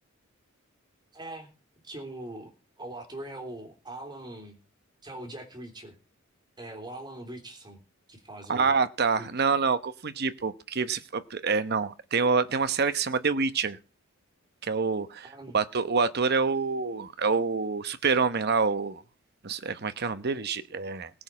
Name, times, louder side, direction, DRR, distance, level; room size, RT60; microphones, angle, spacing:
voice 1, 1.1-1.5 1.8-2.5 2.8-4.6 5.0-5.9 6.6-7.8 8.1-8.7 9.2-9.4 15.2-15.6, right 1 dB, 20° right, 3.3 m, -41 dB
voice 2, 8.5-13.8 14.6-19.0 19.4-21.1, right 5 dB, 50° right, 0.9 m, -27 dB
18.0 x 6.3 x 7.4 m
head